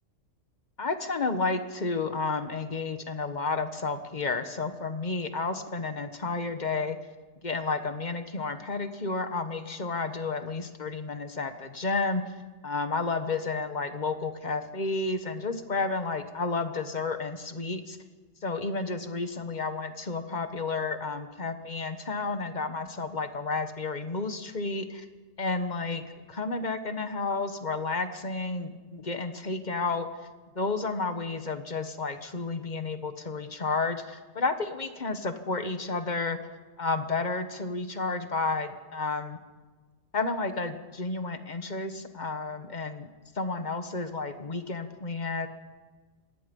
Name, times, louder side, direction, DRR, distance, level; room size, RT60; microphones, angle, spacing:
voice 1, 0.8-7.0 7.4-12.2 12.6-18.0 18.4-25.1 25.4-26.0 26.3-30.1 30.5-36.4 36.8-39.4 40.1-43.1 43.3-45.5, left 3 dB, 35° left, 9 dB, 1.5 m, -31 dB
26.5 x 19.0 x 5.4 m, 1.4 s
omnidirectional pair, 1.3 m